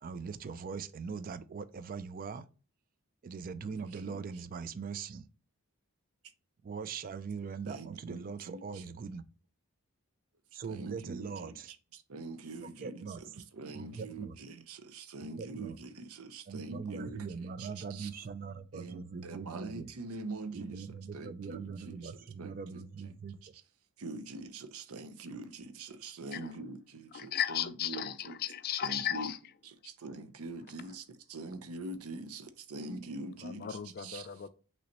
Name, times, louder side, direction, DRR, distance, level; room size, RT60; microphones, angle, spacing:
voice 1, 0.0-2.5 3.2-5.3 6.6-9.2 10.5-11.7 12.6-13.3 13.7-14.4 15.2-15.8 16.5-19.9 20.5-23.5, right 5 dB, 40° right, 0.3 m, -41 dB
voice 2, 3.7-4.3 7.7-8.8 10.7-18.1 18.7-20.9 21.1-22.1 22.4-22.8 24.0-28.4 28.8-29.3 29.6-34.3, right 3 dB, 75° right, 0.6 m, -44 dB
voice 3, 27.1-29.4 33.4-34.5, left 10 dB, 45° left, 0.3 m, -35 dB
5.8 x 3.1 x 2.9 m
head